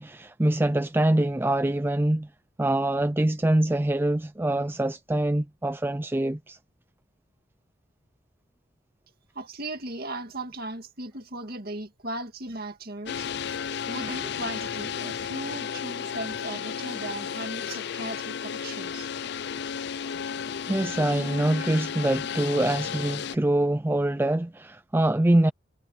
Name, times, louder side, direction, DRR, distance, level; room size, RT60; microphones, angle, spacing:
voice 1, 0.0-2.3 2.6-6.6 20.7-25.5, right 1 dB, 10° right, 0.4 m, -24 dB
voice 2, 9.3-19.1, right 2 dB, 45° right, 2.2 m, -37 dB
sound 1, 13.1-23.4, left 7 dB, 55° left, 0.4 m, -33 dB
head